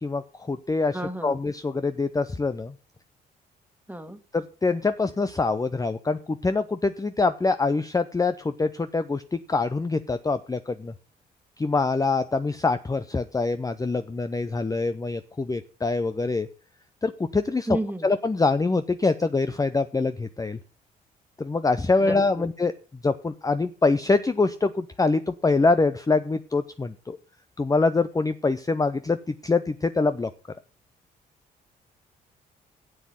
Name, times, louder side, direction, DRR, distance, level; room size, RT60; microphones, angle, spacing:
voice 1, 0.0-2.7 4.3-10.9 11.6-16.5 17.0-17.8 18.0-20.6 21.4-22.7 23.0-27.2 27.6-30.3, left 3 dB, 15° left, 11 dB, 0.6 m, -24 dB
voice 2, 0.9-1.4 3.9-4.2 17.7-18.1 22.0-22.5, right 1 dB, 10° right, 9 dB, 1.8 m, -32 dB
7.9 x 7.3 x 7.7 m, 0.38 s
supercardioid pair, 55°, 20 cm